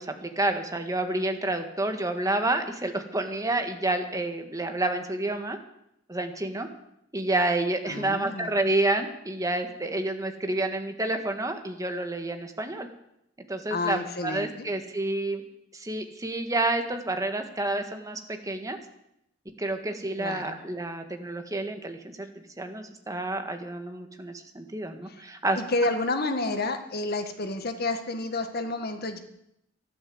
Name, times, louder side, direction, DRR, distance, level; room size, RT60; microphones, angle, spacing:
voice 1, 0.0-5.6 6.1-6.7 7.1-12.9 13.5-15.4 15.7-18.8 19.6-22.3 22.6-25.6, right 2 dB, 20° right, 6 dB, 1.7 m, -29 dB
voice 2, 7.9-8.5 13.7-14.7 20.2-20.6 25.1-25.2 25.5-29.2, left 2 dB, 55° left, 7 dB, 1.7 m, -30 dB
13.0 x 11.5 x 7.9 m, 0.79 s
head